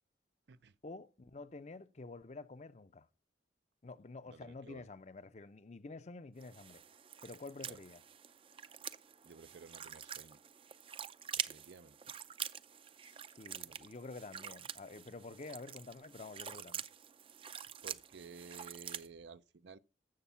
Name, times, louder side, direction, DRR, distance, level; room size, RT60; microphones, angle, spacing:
voice 1, 0.8-3.1 3.8-6.8 7.2-8.0 13.0-16.8, left 3 dB, 40° left, 0.6 m, -49 dB
voice 2, 4.3-4.9 7.7-7.8 9.2-10.4 11.4-12.1 13.7-13.8 17.8-19.8, right 4 dB, 75° right, 0.6 m, -54 dB
sound 1, 6.4-19.1, right 8 dB, 30° right, 0.5 m, -46 dB
14.5 x 7.1 x 5.7 m
head